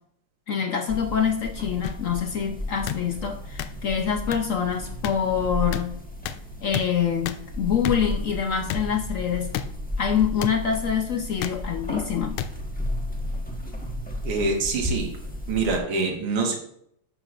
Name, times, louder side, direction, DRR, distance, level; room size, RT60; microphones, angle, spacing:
voice 1, 0.5-6.0 6.6-9.5 10.0-12.4, left 7 dB, 65° left, 4 dB, 0.8 m, -25 dB
sound 1, 0.9-15.8, left 1 dB, 5° left, 0.9 m, -34 dB
sound 2, 1.8-1.9 2.9-3.0 3.6-3.7 4.3-4.4 5.0-5.1 5.7-5.8 6.3-6.4 6.7-6.9 7.3-7.4 7.8-8.0 8.7-8.8 9.5-9.7 10.4-10.5 11.4-11.6 12.4-12.5 13.3-13.5, left 10 dB, 85° left, 1.5 m, -29 dB
voice 2, 14.2-15.1 15.5-16.6, right 3 dB, 85° right, 1 dB, 2.3 m, -25 dB
11.0 x 7.5 x 2.5 m, 0.69 s
omnidirectional pair, 2.4 m